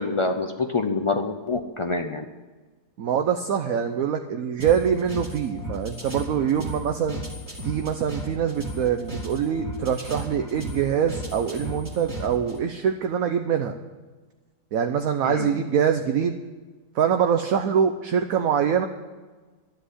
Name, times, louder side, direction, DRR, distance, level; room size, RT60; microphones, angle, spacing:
voice 1, 0.0-2.2 15.2-15.5, left 3 dB, 50° left, 4 dB, 0.3 m, -26 dB
voice 2, 3.0-7.2 7.6-13.8 14.7-16.3 16.9-18.9, right 8 dB, 65° right, 5 dB, 1.1 m, -24 dB
sound 1, 4.6-12.6, equal, 10° right, 2.4 m, -35 dB
12.5 x 7.8 x 9.9 m, 1.3 s
omnidirectional pair, 1.7 m